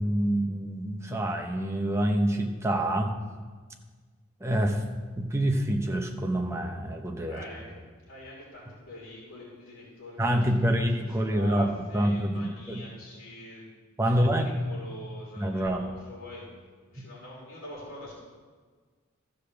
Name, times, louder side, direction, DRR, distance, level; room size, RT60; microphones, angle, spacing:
voice 1, 0.0-3.1 4.4-4.8 5.2-7.4 10.2-12.9 14.0-14.5 15.4-15.8, right 1 dB, 15° right, 2 dB, 0.9 m, -26 dB
voice 2, 7.3-7.8 8.0-13.7 14.1-16.5 16.9-18.1, left 1 dB, 75° left, -6 dB, 3.1 m, -44 dB
13.5 x 5.2 x 6.9 m, 1.5 s
head